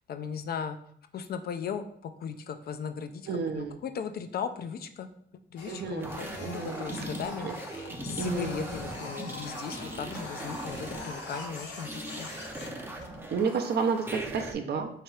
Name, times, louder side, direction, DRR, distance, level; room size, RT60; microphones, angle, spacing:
voice 1, 0.1-0.8 1.1-3.3 3.5-5.1 5.5-7.8 8.0-12.3, left 7 dB, 50° left, 8 dB, 0.4 m, -37 dB
voice 2, 3.3-3.8 5.7-6.8 7.4-7.6 8.2-8.6 13.3-14.9, right 5 dB, 55° right, 5 dB, 0.6 m, -31 dB
Printer, 5.6-13.4, left 3 dB, 65° left, 0.8 m, -44 dB
sound 1, 6.0-14.5, right 1 dB, 10° right, 0.5 m, -39 dB
3.5 x 2.9 x 3.3 m, 0.65 s
cardioid pair, 90°, 20 cm